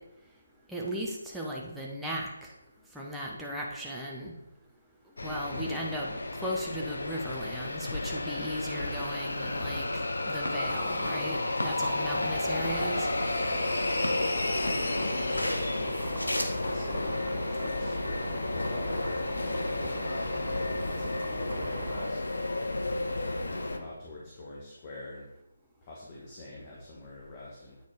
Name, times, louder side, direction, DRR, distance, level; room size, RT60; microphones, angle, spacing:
voice 1, 0.7-2.5 2.9-4.3 5.2-9.9 10.2-13.1, equal, 5° right, -4 dB, 0.8 m, -36 dB
sound 1, 5.2-23.8, left 2 dB, 70° left, 0.8 m, -32 dB
sound 2, 10.3-16.9, left 1 dB, 90° left, 1.2 m, -39 dB
sound 3, 12.0-22.1, right 6 dB, 35° right, 0.5 m, -43 dB
voice 2, 13.4-22.2 23.2-25.3 25.8-27.8, left 2 dB, 30° left, -4 dB, 1.4 m, -45 dB
8.6 x 4.1 x 4.7 m, 0.89 s
figure-of-eight pair, 150°, 0 cm